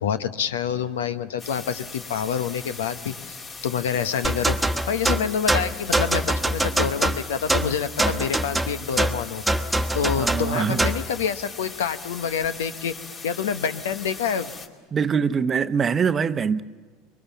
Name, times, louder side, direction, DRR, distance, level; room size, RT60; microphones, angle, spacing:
voice 1, 0.0-3.4 3.6-4.6 4.9-9.4 9.9-12.9 13.2-14.5, left 7 dB, 80° left, 1.0 m, -27 dB
sound 1, 1.4-14.7, left 4 dB, 35° left, 2.7 m, -40 dB
sound 2, 4.2-11.1, right 1 dB, 5° right, 1.3 m, -24 dB
voice 2, 10.2-10.8 14.9-16.6, right 6 dB, 30° right, 0.8 m, -23 dB
25.0 x 22.5 x 7.3 m
hypercardioid pair, 80°, 0 cm